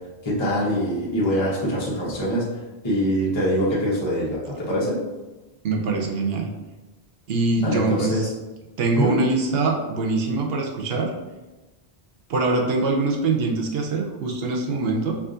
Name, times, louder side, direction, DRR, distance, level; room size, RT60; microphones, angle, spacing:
voice 1, 0.2-2.4 2.8-5.0 7.6-8.3 9.0-9.1, equal, 30° left, -6 dB, 0.9 m, -23 dB
voice 2, 5.6-6.5 7.3-8.3 8.8-11.1 12.3-15.1, right 3 dB, 70° right, 0 dB, 0.9 m, -23 dB
4.8 x 2.5 x 2.5 m, 1.1 s
omnidirectional pair, 1.1 m